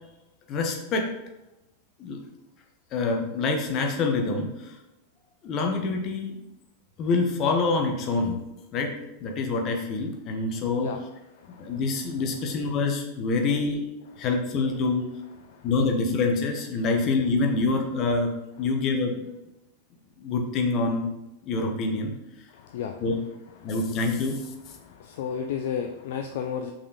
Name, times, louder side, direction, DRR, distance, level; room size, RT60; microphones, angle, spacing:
voice 1, 0.5-1.1 2.0-2.2 2.9-4.8 5.4-6.4 7.0-8.4 8.7-8.9 9.2-10.9 11.6-13.8 14.2-15.0 15.6-18.3 18.6-19.1 20.2-21.1 21.4-22.1 23.0-23.2 23.6-24.4, left 3 dB, 35° left, 3 dB, 1.2 m, -26 dB
voice 2, 11.4-11.8 15.4-15.7 22.5-23.0 23.6-23.8 24.8-26.7, left 7 dB, 55° left, 5 dB, 0.4 m, -33 dB
5.5 x 4.3 x 5.0 m, 0.95 s
figure-of-eight pair, 90°, 0 cm